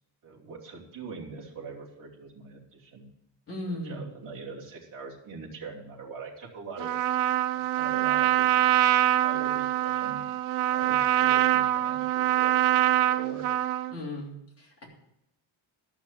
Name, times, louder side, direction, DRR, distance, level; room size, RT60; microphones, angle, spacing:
voice 1, 0.2-3.1 3.6-6.9 7.5-8.6 9.2-10.2 10.7-12.6 13.1-13.5, right 4 dB, 40° right, -5 dB, 3.0 m, -42 dB
voice 2, 3.5-4.0 13.9-14.9, left 1 dB, 30° left, -4 dB, 3.2 m, -37 dB
Trumpet, 6.8-13.9, right 13 dB, 85° right, 0.6 m, -24 dB
12.5 x 6.0 x 7.5 m, 0.79 s
cardioid pair, 180°, 48 cm